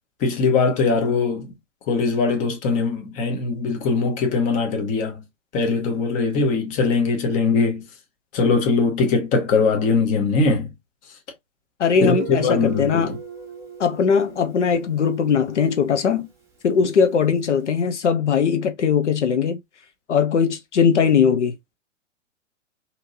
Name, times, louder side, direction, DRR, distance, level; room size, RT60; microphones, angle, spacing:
voice 1, 0.2-1.5 1.9-5.2 5.5-7.8 8.3-10.7 12.0-12.1 12.4-13.1, left 4 dB, 20° left, 0.8 m, -21 dB
voice 2, 11.8-13.1 13.8-16.3 16.6-19.6 20.1-21.5, left 6 dB, 65° left, 0.6 m, -20 dB
Guitar, 11.9-15.5, right 4 dB, 5° right, 1.0 m, -35 dB
2.8 x 2.7 x 2.5 m
figure-of-eight pair, 110°, 38 cm